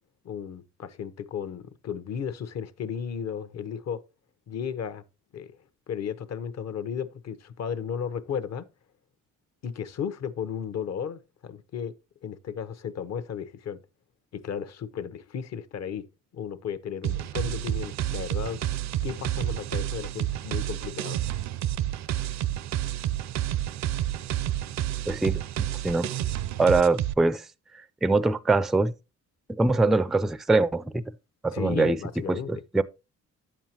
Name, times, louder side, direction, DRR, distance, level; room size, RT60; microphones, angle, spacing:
voice 1, 0.2-4.0 4.5-5.0 5.3-5.6 5.9-8.7 9.6-11.9 12.2-13.8 14.3-16.0 16.3-18.6 19.0-21.2 31.5-32.5, left 7 dB, 60° left, 0.9 m, -34 dB
sound 1, 17.0-27.1, right 13 dB, 65° right, 0.5 m, -30 dB
voice 2, 25.1-25.4 25.8-26.1 26.6-27.5 28.0-28.9 29.6-31.0 31.4-32.0 32.3-32.8, right 3 dB, ahead, 0.3 m, -23 dB
8.8 x 7.3 x 2.9 m
cardioid pair, 90°, 30 cm